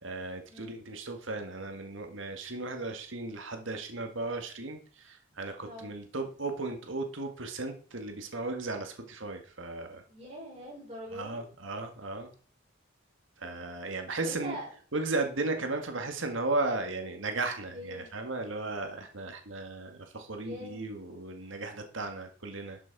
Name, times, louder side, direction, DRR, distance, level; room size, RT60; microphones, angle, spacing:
voice 1, 0.0-10.0 11.1-12.3 13.4-14.6 14.9-22.8, right 3 dB, 80° right, 5 dB, 1.8 m, -35 dB
voice 2, 5.3-5.9 10.1-11.4 14.2-14.7 17.7-18.1 20.3-20.9, equal, 30° right, -3 dB, 5.3 m, -43 dB
12.5 x 6.4 x 4.7 m, 0.41 s
head